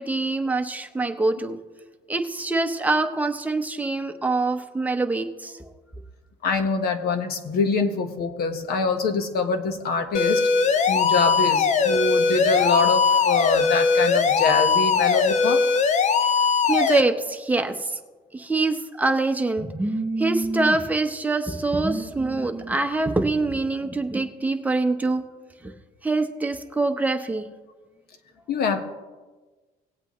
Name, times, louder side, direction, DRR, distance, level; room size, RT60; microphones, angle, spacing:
voice 1, 0.0-1.6 2.1-5.6 16.7-18.0 18.3-25.2 25.6-25.7 26.0-27.5, right 3 dB, 10° right, 5 dB, 0.9 m, -24 dB
voice 2, 6.4-10.5 10.9-15.6 25.7-25.8 28.5-28.8, left 4 dB, 65° left, 6 dB, 1.3 m, -24 dB
sound 1, 10.1-17.0, left 5 dB, 45° left, 0.7 m, -20 dB
19.0 x 8.2 x 3.1 m, 1.3 s
cardioid pair, 110°, 17 cm